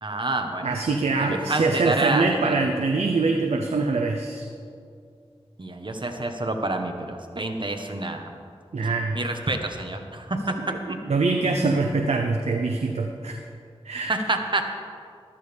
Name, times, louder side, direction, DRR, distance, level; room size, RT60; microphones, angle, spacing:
voice 1, 0.0-0.7 1.2-2.5 5.6-8.3 9.1-10.5 10.9-11.0 14.1-14.6, right 2 dB, 50° right, 5 dB, 1.3 m, -28 dB
voice 2, 0.6-4.5 8.7-9.2 10.7-10.8 11.1-13.3 13.8-14.1, right 3 dB, 85° right, 3 dB, 0.8 m, -24 dB
15.0 x 13.0 x 3.5 m, 2.3 s
cardioid pair, 45°, 11 cm